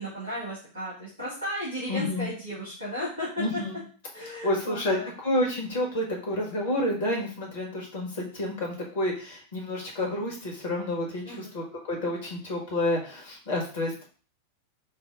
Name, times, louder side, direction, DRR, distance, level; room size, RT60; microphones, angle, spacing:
voice 1, 0.0-3.6 4.1-5.1 11.2-11.6, equal, 85° right, -8 dB, 2.1 m, -35 dB
voice 2, 1.9-2.3 3.4-3.8 4.4-14.0, left 1 dB, 55° left, -1 dB, 1.3 m, -29 dB
5.5 x 2.1 x 3.6 m, 0.39 s
figure-of-eight pair, 90°, 0 cm